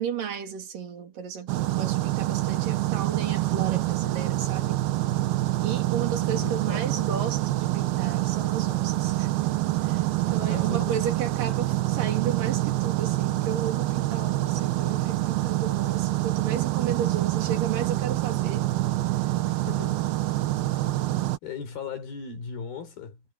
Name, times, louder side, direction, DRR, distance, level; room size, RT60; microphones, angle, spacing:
voice 1, 0.0-4.8 5.6-9.3 9.8-18.7, right 8 dB, 65° right, 4.0 m, -34 dB
sound 1, 1.5-21.4, right 16 dB, 85° right, 3.2 m, -26 dB
voice 2, 6.1-7.1 10.4-10.9 19.4-20.1 21.4-23.2, left 5 dB, 80° left, 6.0 m, -38 dB
omnidirectional pair, 4.2 m